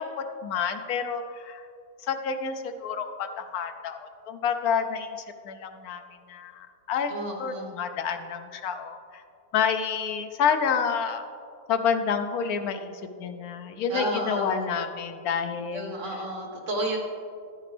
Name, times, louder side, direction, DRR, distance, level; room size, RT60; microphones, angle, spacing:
voice 1, 0.0-1.7 2.0-5.1 5.4-6.0 6.3-7.1 7.4-9.2 9.5-11.2 11.7-12.9 13.2-16.2, left 6 dB, 85° left, 8 dB, 1.2 m, -29 dB
voice 2, 7.1-7.7 13.9-14.6 15.7-17.0, right 1 dB, 55° right, -1 dB, 1.8 m, -31 dB
11.5 x 9.4 x 3.3 m, 2.3 s
omnidirectional pair, 1.5 m